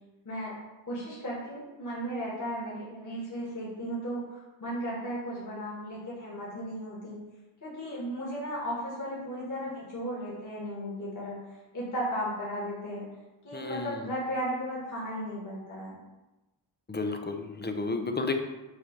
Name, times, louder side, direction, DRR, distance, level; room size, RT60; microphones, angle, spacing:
voice 1, 0.2-0.5 0.8-7.2 7.6-13.0 13.4-16.0, equal, 40° left, -7 dB, 1.9 m, -35 dB
voice 2, 13.5-14.1 16.9-18.4, left 3 dB, 20° left, 6 dB, 0.6 m, -32 dB
8.1 x 2.8 x 5.2 m, 1.1 s
wide cardioid pair, 110°, 48 cm